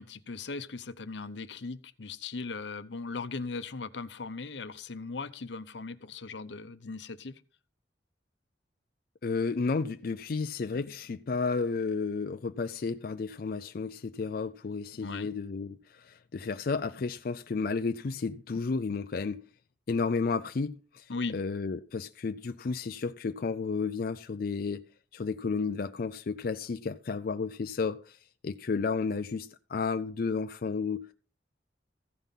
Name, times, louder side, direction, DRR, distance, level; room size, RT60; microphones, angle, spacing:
voice 1, 0.0-7.4 15.0-15.3 21.1-21.4, left 4 dB, 80° left, 0.8 m, -38 dB
voice 2, 9.2-19.4 19.9-24.8 25.1-28.2 28.4-31.1, left 4 dB, 55° left, 0.4 m, -32 dB
15.0 x 5.4 x 5.7 m
head